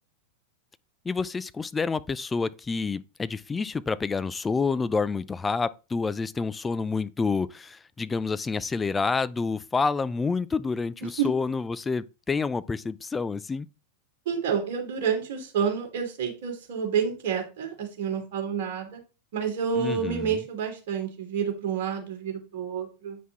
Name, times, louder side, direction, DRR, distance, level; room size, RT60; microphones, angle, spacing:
voice 1, 1.0-13.7 19.8-20.4, left 4 dB, 15° left, 0.4 m, -28 dB
voice 2, 14.3-19.0 19.3-23.2, right 7 dB, 50° right, 2.8 m, -29 dB
9.3 x 5.7 x 3.0 m
figure-of-eight pair, 90°, 0 cm